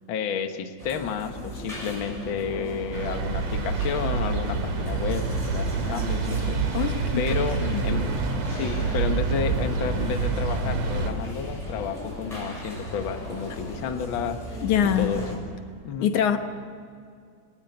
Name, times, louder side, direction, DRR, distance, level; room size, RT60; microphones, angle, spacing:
voice 1, 0.1-6.8 7.1-8.1 8.5-14.6 14.9-15.3 15.8-16.1, left 7 dB, 50° left, 1.6 m, -31 dB
sound 1, 0.8-15.4, equal, 10° left, 6.5 m, -36 dB
sound 2, 2.9-11.1, right 5 dB, 65° right, 3.6 m, -27 dB
voice 2, 6.7-7.2 7.6-7.8 14.6-15.1 16.0-16.4, left 9 dB, 70° left, 2.5 m, -23 dB
24.0 x 19.5 x 8.0 m
omnidirectional pair, 3.6 m